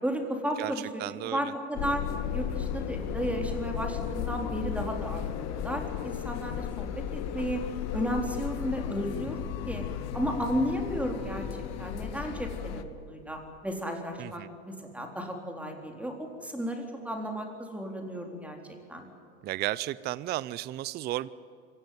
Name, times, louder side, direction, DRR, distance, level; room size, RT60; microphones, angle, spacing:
voice 1, 0.0-2.0 2.3-5.2 5.6-7.6 7.9-9.4 9.7-9.9 10.1-11.5 11.8-16.1 16.4-18.6 18.9-19.0, equal, 5° right, 3 dB, 3.9 m, -33 dB
voice 2, 0.6-1.5 14.2-14.5 19.4-21.3, right 15 dB, 30° right, 19 dB, 0.5 m, -34 dB
sound 1, 1.8-12.8, left 9 dB, 50° left, 1.5 m, -35 dB
25.0 x 16.0 x 9.6 m, 2.5 s
supercardioid pair, 110°, 33 cm